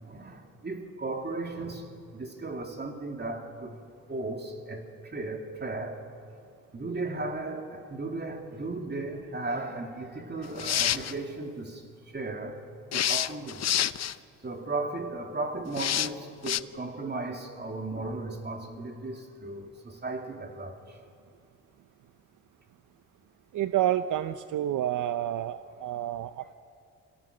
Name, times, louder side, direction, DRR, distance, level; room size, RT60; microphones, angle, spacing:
voice 1, 0.0-3.8 4.1-6.0 6.7-12.6 12.9-13.6 14.4-21.0, right 2 dB, 30° right, 3.0 m, -36 dB
sound 1, 10.4-11.1 12.9-14.2 15.8-16.1 16.5-16.6, left 10 dB, 50° left, 0.6 m, -27 dB
voice 2, 23.5-26.5, right 12 dB, 70° right, 0.7 m, -29 dB
26.0 x 17.0 x 6.7 m
cardioid pair, 70°, 33 cm